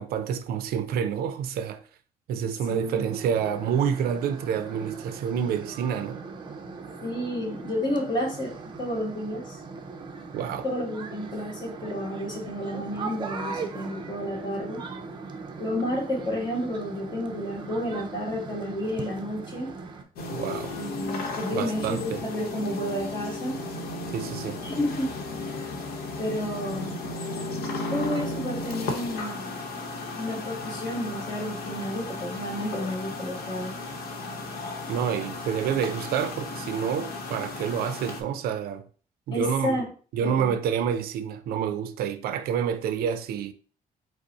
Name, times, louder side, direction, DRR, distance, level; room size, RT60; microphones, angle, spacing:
voice 1, 0.0-1.8 2.3-6.2 10.3-10.7 20.3-20.7 21.5-22.2 24.1-24.6 34.9-38.8 39.3-39.8 40.1-43.5, right 8 dB, 85° right, 0.5 m, -28 dB
sound 1, 2.6-20.0, right 4 dB, 30° right, 0.5 m, -39 dB
voice 2, 2.7-3.1 7.0-9.6 10.6-14.8 15.6-19.7 20.7-23.6 24.6-25.1 26.2-27.0 27.9-29.4 30.2-33.7 39.3-39.9 40.2-40.5, left 1 dB, 30° left, 1.4 m, -31 dB
sound 2, 20.2-38.2, left 2 dB, 90° left, 0.8 m, -35 dB
5.2 x 2.0 x 4.0 m
cardioid pair, 175°, 15 cm